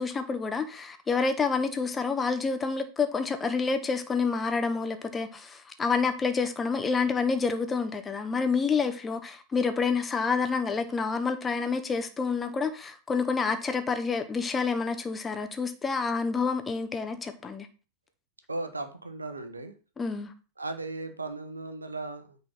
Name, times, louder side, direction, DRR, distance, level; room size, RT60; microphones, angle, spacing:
voice 1, 0.0-17.7 20.0-20.3, left 5 dB, 15° left, 7 dB, 1.3 m, -28 dB
voice 2, 18.5-19.7 20.6-22.4, right 2 dB, 80° right, 8 dB, 1.2 m, -36 dB
9.6 x 4.3 x 5.8 m, 0.34 s
figure-of-eight pair, 90°, 0 cm